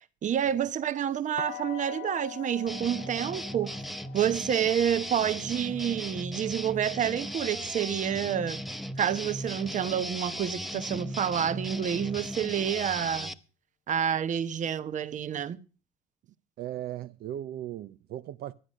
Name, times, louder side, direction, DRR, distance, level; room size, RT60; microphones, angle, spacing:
voice 1, 0.0-3.7 4.1-8.6 9.0-13.3 13.9-15.6, right 9 dB, 45° right, 1.0 m, -29 dB
sound 1, 1.4-7.2, left 18 dB, 80° left, 0.7 m, -45 dB
sound 2, 2.7-13.3, equal, ahead, 0.9 m, -37 dB
voice 2, 16.6-18.5, right 12 dB, 70° right, 0.7 m, -37 dB
12.5 x 10.0 x 6.4 m
cardioid pair, 110°, 17 cm